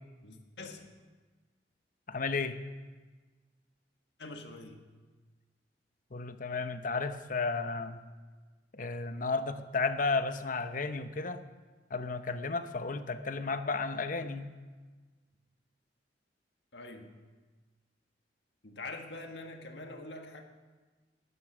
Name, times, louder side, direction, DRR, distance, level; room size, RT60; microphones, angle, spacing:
voice 1, 0.2-0.9 4.2-4.9 16.7-17.2 18.6-20.4, left 2 dB, 75° left, 4 dB, 1.6 m, -45 dB
voice 2, 2.1-2.6 6.1-8.0 8.7-11.4 11.9-14.5, left 4 dB, 50° left, 10 dB, 0.8 m, -33 dB
19.5 x 10.0 x 6.1 m, 1.4 s
head